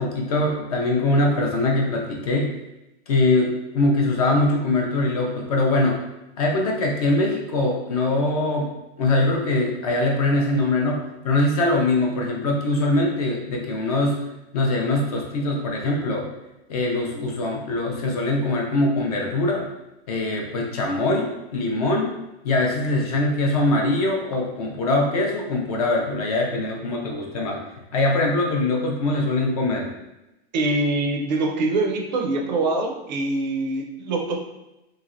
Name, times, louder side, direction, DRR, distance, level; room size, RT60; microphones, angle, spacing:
voice 1, 0.0-2.5 3.1-6.0 6.4-8.7 9.0-14.3 14.5-16.3 16.7-19.7 20.1-22.1 22.4-27.6 27.9-29.9, left 2 dB, 35° left, 0 dB, 0.4 m, -22 dB
voice 2, 30.5-34.4, right 2 dB, 45° right, 2 dB, 0.4 m, -24 dB
3.1 x 2.8 x 2.5 m, 0.94 s
supercardioid pair, 170°, 33 cm